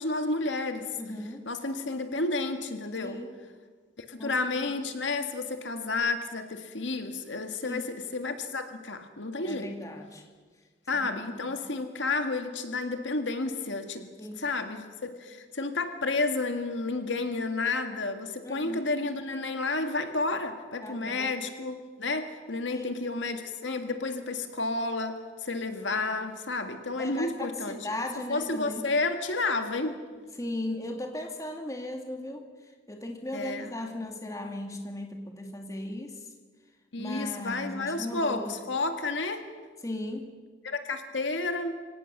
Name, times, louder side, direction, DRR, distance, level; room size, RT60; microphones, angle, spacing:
voice 1, 0.0-1.0 1.5-3.2 4.1-9.7 10.9-14.1 14.4-27.8 28.3-30.0 33.3-33.7 36.9-39.5 40.6-41.8, left 3 dB, 85° left, 7 dB, 1.8 m, -31 dB
voice 2, 1.0-1.4 3.0-3.3 4.2-4.3 4.6-4.8 7.6-7.9 9.4-10.2 10.9-11.6 14.2-14.4 18.4-18.8 20.8-21.3 22.7-23.0 27.0-28.9 30.4-32.4 32.9-36.2 37.0-38.6 39.8-40.3, left 1 dB, 15° left, 3 dB, 2.1 m, -37 dB
24.5 x 17.5 x 6.8 m, 1.5 s
head